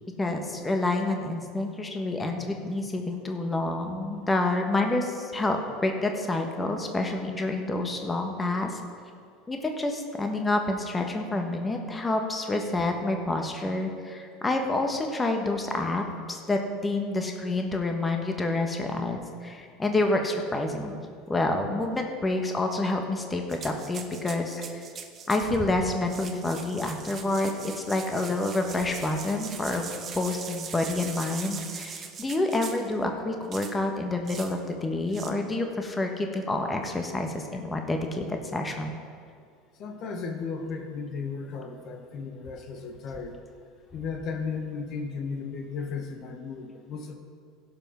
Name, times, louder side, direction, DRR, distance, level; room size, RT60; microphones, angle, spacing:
voice 1, 0.2-8.8 9.5-20.9 21.3-24.8 25.3-38.9, left 2 dB, 20° left, 3 dB, 1.4 m, -28 dB
sound 1, 23.5-25.5 26.0-32.9 33.5-33.8 34.3-34.6 35.1-35.3, right 6 dB, 40° right, 1.2 m, -41 dB
voice 2, 39.8-43.4 43.9-47.1, left 5 dB, 50° left, 5 dB, 1.3 m, -35 dB
16.5 x 5.8 x 5.9 m, 2.3 s
hypercardioid pair, 80°, 0 cm